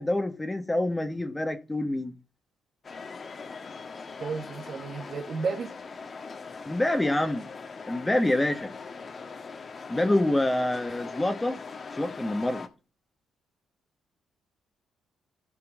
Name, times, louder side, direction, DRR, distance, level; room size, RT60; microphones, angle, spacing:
voice 1, 0.0-2.1 6.7-7.5 7.9-8.7 9.9-11.6 11.9-12.7, left 1 dB, 15° left, 1.5 m, -26 dB
sound 1, 2.8-12.7, left 4 dB, 40° left, 1.3 m, -41 dB
voice 2, 4.2-5.7, right 5 dB, 55° right, 1.5 m, -32 dB
16.5 x 5.5 x 2.6 m
cardioid pair, 90°, 0 cm